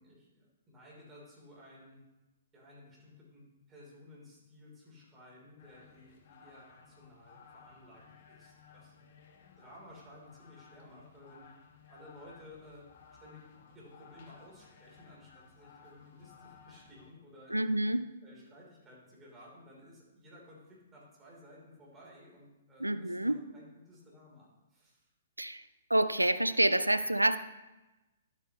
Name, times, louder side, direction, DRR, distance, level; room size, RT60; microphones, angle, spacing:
voice 1, 0.0-2.0 2.5-8.9 9.6-11.5 11.9-12.9 13.2-13.5 13.7-17.8 18.2-25.1, left 1 dB, 15° right, -4 dB, 3.6 m, -55 dB
sound 1, 5.6-17.1, left 6 dB, 50° left, 1.2 m, -58 dB
voice 2, 17.5-18.0 22.8-23.4 25.4-25.6 25.9-27.4, right 1 dB, 90° right, 13 dB, 0.5 m, -27 dB
12.0 x 8.3 x 3.1 m, 1.0 s
figure-of-eight pair, 120°, 0 cm